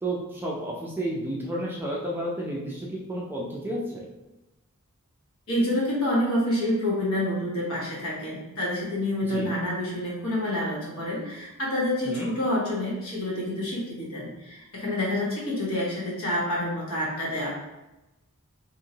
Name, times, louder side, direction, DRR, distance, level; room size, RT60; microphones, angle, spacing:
voice 1, 0.0-4.1 9.3-9.5 12.1-12.3, right 1 dB, 10° right, -3 dB, 0.4 m, -31 dB
voice 2, 5.5-17.5, left 1 dB, 65° left, -6 dB, 1.2 m, -28 dB
2.8 x 2.7 x 2.7 m, 0.99 s
head